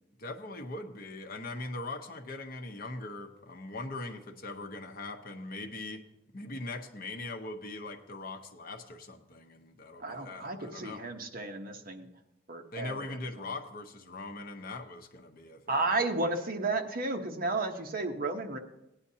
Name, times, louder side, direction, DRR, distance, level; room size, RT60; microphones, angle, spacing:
voice 1, 0.2-6.1 6.3-11.1 12.7-16.0, left 2 dB, 50° left, 4 dB, 0.9 m, -41 dB
voice 2, 10.0-12.1 12.5-13.1 15.7-18.6, right 3 dB, 45° right, 4 dB, 1.0 m, -32 dB
17.0 x 9.8 x 2.8 m, 0.87 s
head